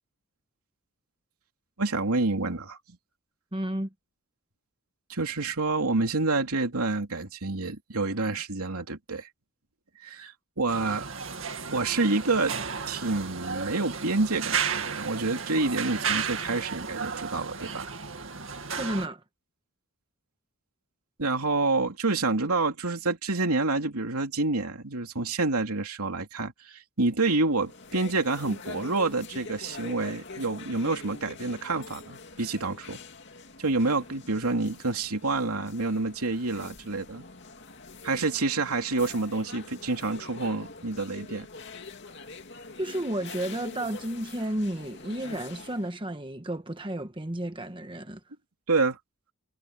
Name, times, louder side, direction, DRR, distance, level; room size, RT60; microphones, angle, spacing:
voice 1, 1.8-2.8 5.1-9.3 10.0-11.1 11.7-12.6 12.9-17.9 21.2-33.0 33.6-37.2 38.0-41.5 48.7-49.0, right 3 dB, 85° right, 3.1 m, -28 dB
voice 2, 3.5-3.9 18.8-19.2 42.8-48.2, right 1 dB, 20° right, 1.3 m, -32 dB
sound 1, 10.7-19.1, right 6 dB, 60° right, 2.3 m, -33 dB
sound 2, 27.5-46.0, left 3 dB, 50° left, 2.8 m, -44 dB
head